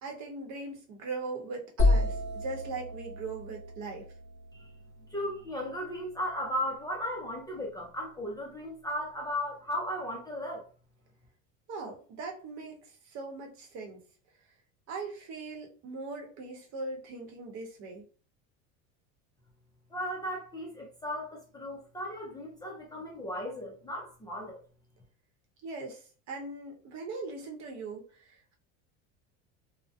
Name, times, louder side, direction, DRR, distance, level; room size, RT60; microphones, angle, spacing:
voice 1, 0.0-4.1 11.7-14.1 14.9-18.0 25.6-28.6, right 3 dB, 50° right, 0.9 m, -40 dB
sound 1, 1.8-5.6, left 2 dB, 30° left, 1.0 m, -30 dB
voice 2, 5.1-10.7 19.9-24.6, equal, 10° left, 0.4 m, -36 dB
2.5 x 2.1 x 2.3 m
supercardioid pair, 125°, 35 cm